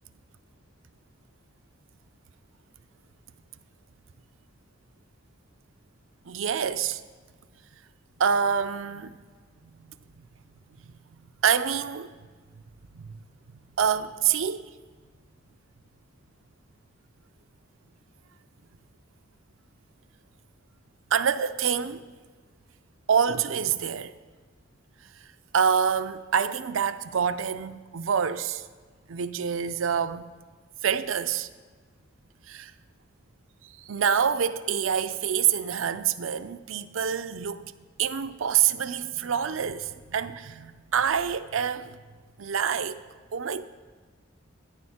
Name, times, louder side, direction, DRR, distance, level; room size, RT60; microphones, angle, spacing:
voice 1, 6.2-7.0 8.2-9.2 9.6-9.9 10.1-10.2 10.8-10.9 11.4-12.1 12.9-13.2 13.8-14.6 21.1-22.0 23.1-24.2 25.2-25.3 25.5-28.7 29.1-30.3 30.8-31.5 32.5-32.7 33.6-37.7 38.0-42.0 42.4-43.0 43.3-43.6, right 7 dB, 80° right, 0.5 m, -26 dB
14.0 x 9.8 x 4.3 m
head